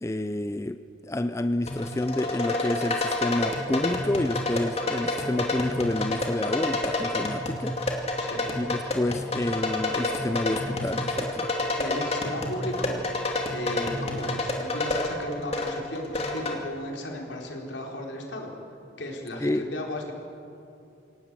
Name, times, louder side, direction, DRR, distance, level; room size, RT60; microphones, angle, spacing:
voice 1, 0.0-7.8 8.6-11.5 19.4-19.7, left 1 dB, 15° left, 10 dB, 0.5 m, -29 dB
sound 1, 1.7-16.6, left 2 dB, 35° left, 2.5 m, -29 dB
voice 2, 8.2-8.5 11.8-13.3 13.5-18.5 19.0-20.1, left 1 dB, 75° left, 0 dB, 4.3 m, -35 dB
27.0 x 17.5 x 7.6 m, 2.7 s
head